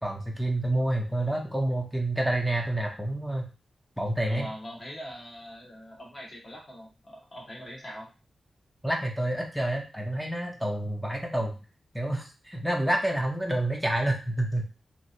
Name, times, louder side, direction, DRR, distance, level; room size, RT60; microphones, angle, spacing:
voice 1, 0.0-3.5 4.0-4.5 8.8-11.5 11.9-14.7, right 1 dB, ahead, 1 dB, 0.5 m, -28 dB
voice 2, 4.2-8.1, equal, 35° left, -2 dB, 1.1 m, -42 dB
3.0 x 2.5 x 2.6 m, 0.32 s
wide cardioid pair, 130°, 0 cm